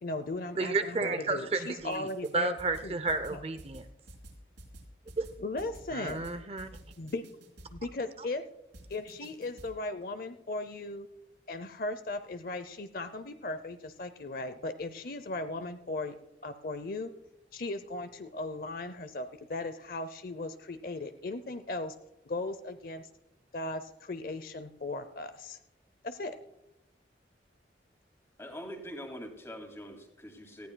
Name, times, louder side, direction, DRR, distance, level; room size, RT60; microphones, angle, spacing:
voice 1, 0.0-2.6 2.8-3.0 3.3-3.4 5.4-6.3 7.0-7.2 7.7-8.4 8.9-11.1 11.5-16.1 16.4-17.1 17.5-21.9 22.3-23.1 23.5-25.6 26.0-26.4, left 2 dB, 50° left, 10 dB, 0.6 m, -37 dB
voice 2, 0.6-2.1 2.3-3.8 5.2-5.3 5.9-6.7, right 3 dB, 35° right, 10 dB, 0.6 m, -31 dB
sound 1, 1.8-2.3 2.6-7.9 8.7-9.7, right 1 dB, 75° right, 3.9 m, -50 dB
voice 3, 28.4-30.7, equal, 15° left, 3 dB, 2.3 m, -43 dB
18.5 x 14.5 x 2.3 m, 0.90 s
head